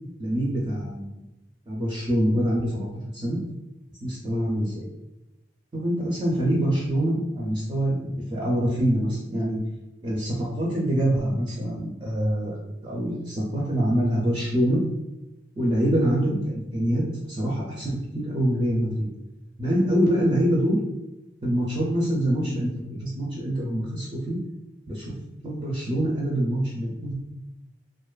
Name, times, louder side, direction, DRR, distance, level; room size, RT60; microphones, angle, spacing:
voice 1, 0.2-1.2 1.7-2.9 3.1-3.4 4.0-4.9 5.7-9.6 10.0-12.6 12.8-14.8 15.6-19.1 19.6-20.8 21.4-24.4 24.9-25.2 25.4-27.1, equal, 25° right, -5 dB, 0.4 m, -25 dB
2.4 x 2.3 x 2.2 m, 0.97 s
head